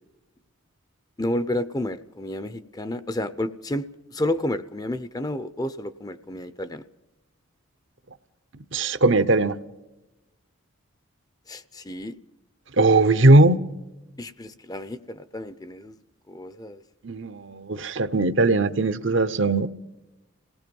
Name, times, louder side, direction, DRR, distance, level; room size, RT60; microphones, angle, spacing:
voice 1, 1.2-6.8 11.5-12.2 14.2-16.0 16.3-16.8, left 1 dB, 15° left, 13 dB, 0.6 m, -31 dB
voice 2, 8.7-9.6 12.8-13.6 17.0-19.7, right 2 dB, 60° right, 12 dB, 0.8 m, -19 dB
27.0 x 18.5 x 5.4 m, 1.0 s
head